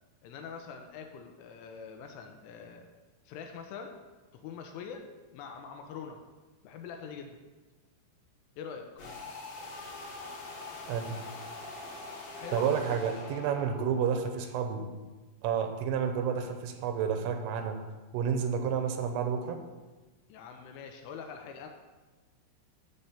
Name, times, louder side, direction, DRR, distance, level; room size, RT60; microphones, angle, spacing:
voice 1, 0.2-2.9 3.3-4.0 4.3-6.2 6.6-7.4 8.6-8.9 12.3-12.7 20.3-21.7, left 6 dB, 80° left, 4 dB, 3.1 m, -44 dB
sound 1, 9.0-14.0, left 3 dB, 45° left, 3.3 m, -43 dB
voice 2, 10.9-11.3 12.5-14.9 15.4-17.8 18.1-19.6, right 7 dB, 85° right, 6 dB, 3.2 m, -30 dB
13.0 x 4.4 x 7.1 m, 1.2 s
omnidirectional pair, 6.0 m